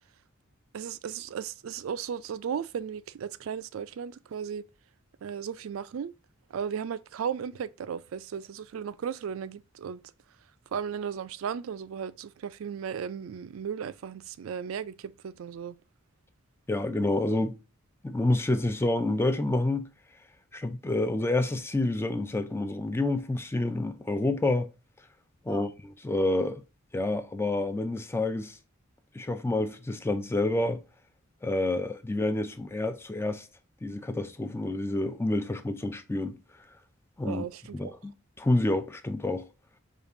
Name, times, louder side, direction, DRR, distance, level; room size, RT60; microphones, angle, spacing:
voice 1, 0.7-4.6 5.2-6.1 6.5-10.0 10.7-15.7 25.5-25.7 37.2-38.0, right 7 dB, 80° right, 0.4 m, -35 dB
voice 2, 16.7-17.6 18.0-19.9 20.5-24.7 25.5-26.6 26.9-28.6 29.1-30.8 31.4-33.5 33.8-36.4 37.2-37.4 37.7-38.1 38.4-39.5, left 2 dB, 10° left, 0.4 m, -28 dB
5.1 x 2.4 x 2.5 m
head